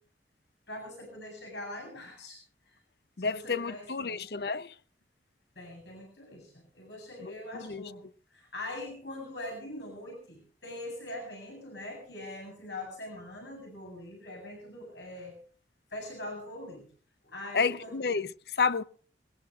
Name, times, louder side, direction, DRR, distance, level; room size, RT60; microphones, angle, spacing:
voice 1, 0.7-2.4 2.7-2.8 3.2-4.2 5.6-8.0 8.3-15.4 15.9-16.9 17.2-18.0, left 1 dB, 85° left, 7.7 m, -42 dB
voice 2, 3.2-4.7 7.2-7.8 17.5-18.8, left 5 dB, 60° left, 0.7 m, -30 dB
21.5 x 21.0 x 2.5 m
head